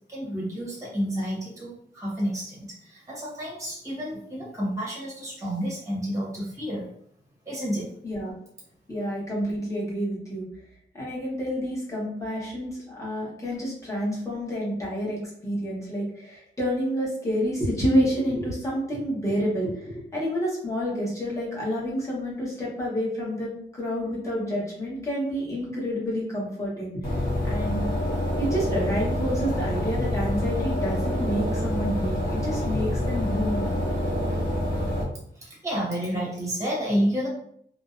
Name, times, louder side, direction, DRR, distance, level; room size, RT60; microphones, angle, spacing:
voice 1, 0.1-6.9 7.5-7.9 35.3-37.3, equal, 15° right, -5 dB, 0.8 m, -30 dB
voice 2, 8.9-10.4 10.9-19.8 20.1-27.0 27.4-27.8 28.4-33.7, equal, 15° left, -6 dB, 0.9 m, -29 dB
sound 1, 27.0-35.0, left 1 dB, 55° left, 0.9 m, -27 dB
2.5 x 2.0 x 2.4 m, 0.67 s
wide cardioid pair, 160°, 19 cm